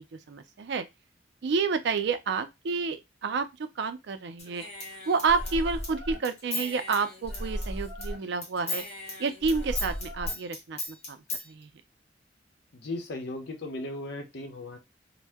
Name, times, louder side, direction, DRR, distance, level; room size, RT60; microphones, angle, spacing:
voice 1, 0.3-0.9 1.4-3.5 3.8-4.6 5.1-8.8 9.2-10.8 11.1-11.2 11.5-11.7, right 4 dB, 65° right, 0.4 m, -29 dB
Human voice / Scissors, 4.4-8.1 8.4-11.4, left 2 dB, 35° left, 1.1 m, -35 dB
voice 2, 12.7-14.8, left 2 dB, 65° left, 0.7 m, -36 dB
2.7 x 2.1 x 3.4 m
head